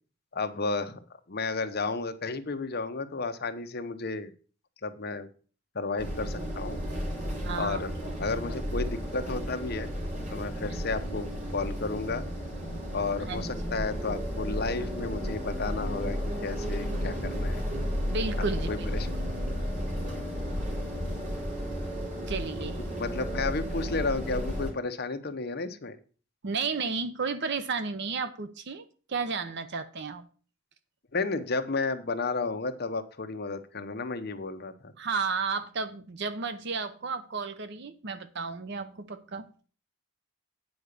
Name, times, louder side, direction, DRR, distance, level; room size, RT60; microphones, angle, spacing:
voice 1, 0.3-1.0 1.3-4.3 4.8-5.3 5.7-6.8 7.5-7.9 8.2-9.9 10.3-12.3 12.9-17.6 18.7-19.1 23.0-26.0 31.1-34.9, left 3 dB, 50° left, 0.9 m, -32 dB
sound 1, 6.0-24.7, equal, 40° right, 3.4 m, -33 dB
voice 2, 7.4-7.9 10.7-10.8 13.3-13.5 13.7-13.8 18.1-18.9 22.3-22.8 26.4-30.3 35.0-39.5, right 4 dB, 55° right, 0.7 m, -33 dB
9.2 x 4.9 x 6.8 m
head